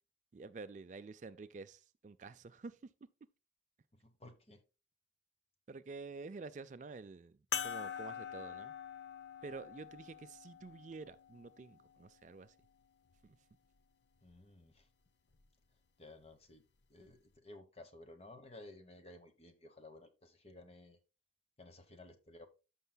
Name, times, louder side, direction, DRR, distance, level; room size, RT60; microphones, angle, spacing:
voice 1, 0.3-2.8 5.7-7.4 7.6-8.7 9.4-12.5 13.2-13.4, right 4 dB, 40° right, 0.4 m, -49 dB
voice 2, 4.0-4.6 14.2-14.9 16.0-16.6 16.9-21.0 21.6-22.5, left 2 dB, 35° left, 1.1 m, -55 dB
sound 1, 7.5-12.3 13.1-13.2 15.3-15.5, left 8 dB, 70° left, 0.6 m, -44 dB
13.5 x 5.6 x 2.3 m
head